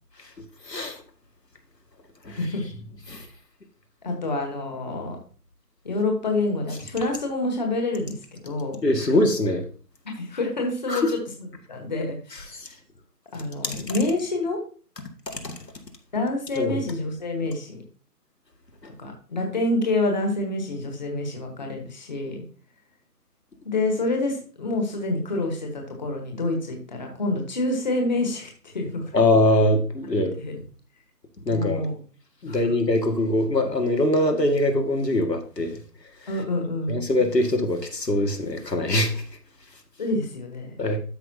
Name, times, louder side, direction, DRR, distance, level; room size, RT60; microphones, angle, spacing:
voice 1, 0.6-1.0 2.2-2.4 3.1-3.3 8.8-9.6 10.9-11.1 12.5-12.7 13.6-13.8 15.4-15.6 16.6-16.8 29.1-30.3 31.5-31.8 32.4-35.8 36.9-39.2 40.8-41.0, left 1 dB, 90° left, 4 dB, 2.0 m, -22 dB
voice 2, 2.3-2.6 3.1-3.2 4.0-5.2 5.8-8.8 10.2-11.2 11.7-12.7 13.3-14.6 16.1-17.8 19.0-22.4 23.6-29.2 30.4-30.6 31.5-32.0 32.4-32.6 36.3-37.1 40.0-40.9, left 2 dB, 30° left, 2 dB, 1.3 m, -27 dB
12.5 x 5.2 x 2.8 m, 0.40 s
figure-of-eight pair, 160°, 48 cm